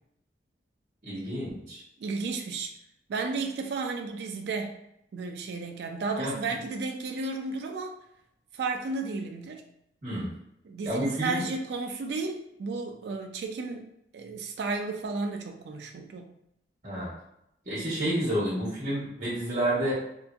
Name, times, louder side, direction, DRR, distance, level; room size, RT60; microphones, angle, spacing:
voice 1, 1.0-1.8 6.2-6.3 10.0-10.3 10.8-11.4 16.8-17.1 17.6-20.0, right 1 dB, 45° right, -7 dB, 1.1 m, -30 dB
voice 2, 2.0-2.7 3.1-4.8 5.1-7.9 8.5-9.6 10.6-16.3, right 3 dB, 75° right, 4 dB, 0.3 m, -33 dB
2.8 x 2.5 x 2.3 m, 0.79 s
head